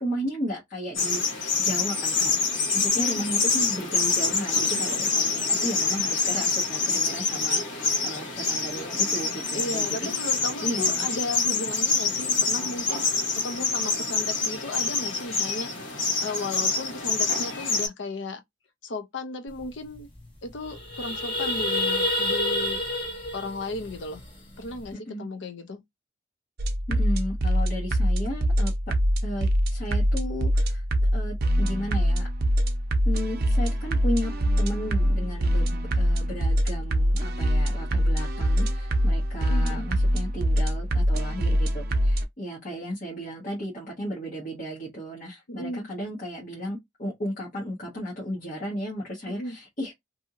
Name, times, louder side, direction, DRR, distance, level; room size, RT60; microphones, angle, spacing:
voice 1, 0.0-10.3 10.6-11.0 24.9-25.2 26.9-28.9 29.2-32.3 33.0-49.9, equal, 45° left, 1.2 m, -34 dB
sound 1, 0.9-17.9, left 4 dB, 85° left, 1.2 m, -26 dB
voice 2, 3.0-3.3 9.5-18.4 18.8-20.1 20.4-22.8 23.3-24.2 24.6-25.8 39.5-39.9 45.5-45.9 49.3-49.6, left 2 dB, 70° left, 0.6 m, -35 dB
sound 2, 19.6-19.7 19.9-20.2 20.5-24.8, left 1 dB, 25° left, 1.1 m, -29 dB
sound 3, 26.6-42.2, equal, 55° right, 0.6 m, -24 dB
2.8 x 2.7 x 2.4 m
head